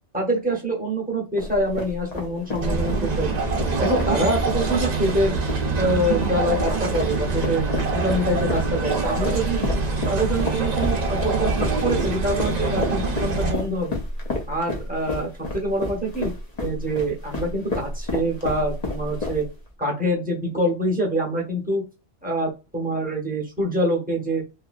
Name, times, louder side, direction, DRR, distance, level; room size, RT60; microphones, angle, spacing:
voice 1, 0.1-3.3 3.8-5.4 5.8-7.7 7.9-9.6 10.1-14.0 14.5-16.3 16.6-19.4 19.8-21.8 22.2-24.4, right 1 dB, 10° right, -2 dB, 0.9 m, -25 dB
sound 1, 1.4-19.7, left 2 dB, 40° left, 0.8 m, -31 dB
sound 2, 2.6-13.5, right 3 dB, 45° right, 0.6 m, -25 dB
2.8 x 2.7 x 2.5 m, 0.29 s
omnidirectional pair, 1.2 m